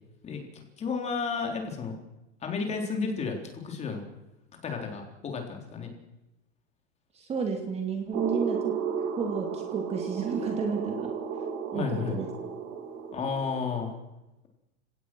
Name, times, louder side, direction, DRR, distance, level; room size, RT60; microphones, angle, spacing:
voice 1, 0.2-2.0 2.4-4.0 4.6-5.9 11.7-12.2 13.1-13.9, left 5 dB, 20° left, 3 dB, 3.8 m, -32 dB
voice 2, 7.1-8.7 9.2-11.1 11.7-12.3, right 5 dB, 15° right, 3 dB, 2.7 m, -31 dB
sound 1, 8.1-13.9, right 7 dB, 35° right, 3.2 m, -34 dB
30.0 x 17.5 x 6.2 m, 0.97 s
supercardioid pair, 160°, 35 cm